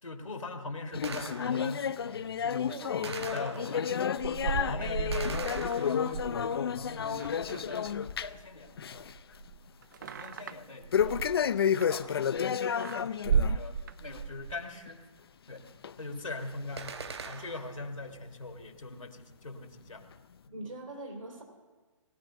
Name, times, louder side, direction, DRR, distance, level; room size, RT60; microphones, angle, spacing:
voice 1, 0.0-2.6 3.0-3.9 4.4-5.4 5.7-7.9 8.2-9.1 10.0-11.2 11.9-12.4 12.8-15.0 15.5-15.6 16.0-20.0 20.5-20.6, left 2 dB, 80° left, 4 dB, 1.8 m, -41 dB
sound 1, 0.9-8.5 8.8-9.1 9.5-9.6 10.9-13.6 14.0-14.2 14.9-15.0 15.8-15.9 16.7-16.8, left 8 dB, 50° left, 0.4 m, -31 dB
Gunshot gunfire, 1.0-1.8 3.0-4.0 5.1-6.4 16.8-17.8, right 5 dB, 55° right, 1.0 m, -42 dB
voice 2, 2.7-3.5 4.5-4.8 20.5-21.4, right 2 dB, 75° right, 0 dB, 2.9 m, -43 dB
sound 2, 4.1-8.4 8.7-12.4 12.8-14.6, right 6 dB, 35° right, 0.4 m, -34 dB
20.5 x 13.0 x 2.7 m, 1.3 s
figure-of-eight pair, 135°, 17 cm